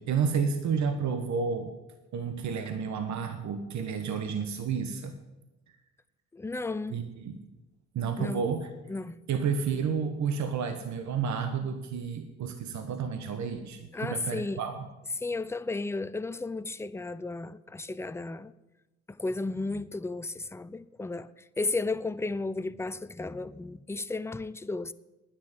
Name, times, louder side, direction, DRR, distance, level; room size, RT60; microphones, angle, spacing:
voice 1, 0.0-1.7 2.1-5.1 6.9-7.3 7.9-8.7 9.3-14.9, right 6 dB, 65° right, 1.4 m, -31 dB
voice 2, 6.3-7.0 8.2-8.4 8.9-9.2 13.9-14.6 15.2-18.5 19.1-24.9, left 3 dB, 10° left, 0.6 m, -34 dB
9.9 x 9.7 x 9.1 m
cardioid pair, 90°, 30 cm